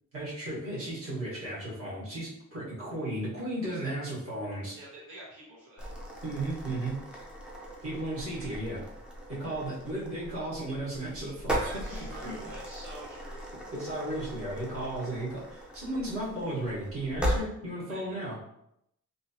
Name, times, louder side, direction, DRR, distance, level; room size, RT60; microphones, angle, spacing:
voice 1, 0.1-4.7 6.2-7.0 7.8-8.8 9.3-11.7 12.0-12.3 13.7-18.4, right 1 dB, 45° right, -7 dB, 1.5 m, -35 dB
voice 2, 4.7-5.9 11.6-13.5 17.9-18.0, right 1 dB, 80° right, -6 dB, 1.2 m, -46 dB
sound 1, 5.8-17.4, equal, 5° right, 0.4 m, -38 dB
3.1 x 2.7 x 2.8 m, 0.78 s
wide cardioid pair, 180°, 31 cm